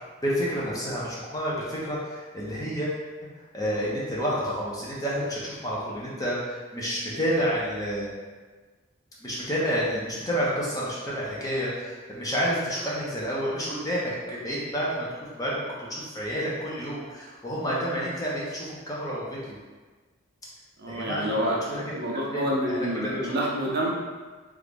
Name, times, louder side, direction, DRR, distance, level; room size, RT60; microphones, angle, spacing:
voice 1, 0.2-2.9 3.5-8.1 9.2-15.1 15.4-19.6 20.9-21.8 22.1-23.4, equal, 15° left, -7 dB, 0.6 m, -29 dB
voice 2, 20.8-23.9, equal, 50° right, -3 dB, 0.6 m, -28 dB
3.1 x 2.5 x 3.5 m, 1.3 s
head